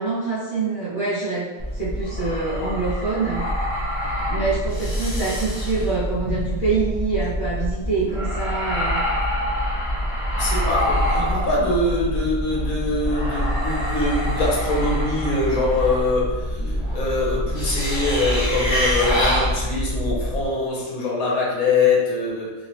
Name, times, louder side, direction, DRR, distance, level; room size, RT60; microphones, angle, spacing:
voice 1, 0.0-3.5 4.3-9.0, right 4 dB, 20° right, -10 dB, 0.9 m, -25 dB
sound 1, 1.6-20.4, equal, 35° left, 0.5 m, -25 dB
voice 2, 10.4-22.5, left 2 dB, 70° left, -4 dB, 1.3 m, -23 dB
3.0 x 3.0 x 2.9 m, 1.2 s
omnidirectional pair, 1.6 m